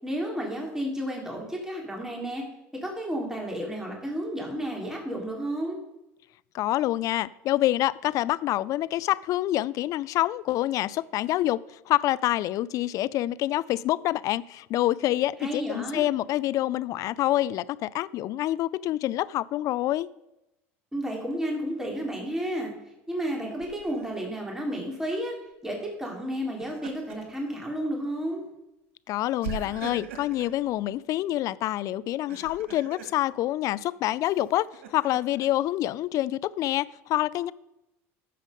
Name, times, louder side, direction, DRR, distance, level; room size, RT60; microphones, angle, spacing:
voice 1, 0.0-2.4 2.8-5.8 15.4-16.1 20.9-22.7 23.1-25.3 25.6-28.4, equal, 5° right, 3.6 m, -32 dB
voice 2, 6.5-20.1 29.1-37.5, left 14 dB, 55° left, 0.4 m, -27 dB
Laughter, 23.6-24.1 26.4-27.4 27.8-27.9 29.4-30.6 32.1-33.1 34.2-35.5, right 7 dB, 85° right, 1.6 m, -41 dB
14.5 x 5.3 x 5.2 m
supercardioid pair, 95°, 7 cm